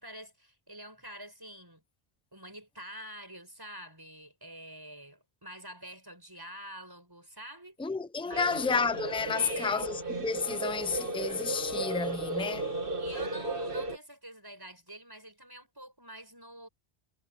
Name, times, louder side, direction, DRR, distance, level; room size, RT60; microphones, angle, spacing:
voice 1, 0.0-1.8 2.3-7.9 8.2-8.6 9.3-9.9 12.3-12.5 13.0-16.7, right 1 dB, 20° right, 6.8 m, -47 dB
voice 2, 7.8-12.7, left 5 dB, 5° left, 0.7 m, -31 dB
sound 1, 8.3-14.0, right 2 dB, 60° right, 2.6 m, -35 dB
omnidirectional pair, 1.0 m